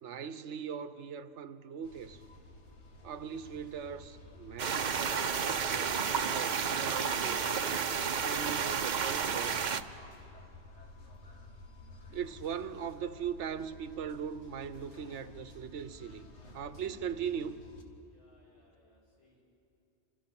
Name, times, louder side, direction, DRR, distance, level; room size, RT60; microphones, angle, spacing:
voice 1, 0.0-2.2 3.0-7.6 8.1-9.6 12.1-16.3 16.5-17.6, right 7 dB, 85° right, 1.1 m, -40 dB
sound 1, 1.8-17.8, left 2 dB, 75° left, 2.1 m, -53 dB
sound 2, 4.6-9.8, right 6 dB, 45° right, 0.8 m, -31 dB
voice 2, 18.1-19.4, left 1 dB, 50° left, 7.6 m, -67 dB
28.0 x 25.5 x 6.0 m
omnidirectional pair, 1.2 m